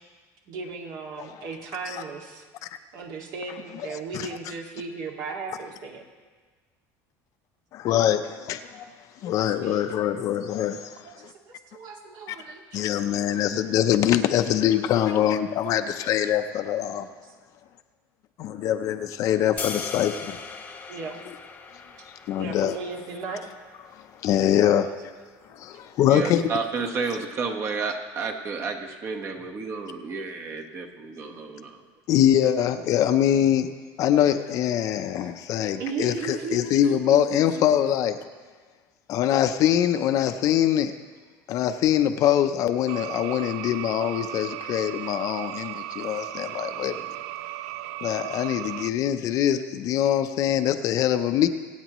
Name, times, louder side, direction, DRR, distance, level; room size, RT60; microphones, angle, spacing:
voice 1, 0.5-2.4 2.9-6.0 9.4-9.9 11.0-12.8 17.2-17.3 18.5-18.6 20.9-21.2 22.4-23.4 25.7-25.9 28.6-28.7 29.6-30.2 35.2-35.3 35.8-37.7, right 4 dB, 60° right, 1 dB, 2.1 m, -36 dB
voice 2, 7.7-8.9 9.2-11.3 12.3-12.4 12.7-17.1 18.4-20.4 22.3-22.7 23.9-25.1 25.5-26.5 32.1-33.7 34.0-38.1 39.1-40.9 41.5-47.0 48.0-51.5, left 10 dB, 50° left, 9 dB, 0.7 m, -23 dB
sound 1, 19.6-25.7, left 5 dB, 20° left, 0.9 m, -40 dB
voice 3, 26.0-31.8, right 4 dB, 35° right, 4 dB, 1.3 m, -31 dB
sound 2, 42.9-48.9, right 15 dB, 80° right, 0.4 m, -36 dB
24.0 x 9.1 x 3.1 m, 1.4 s
cardioid pair, 145°, 7 cm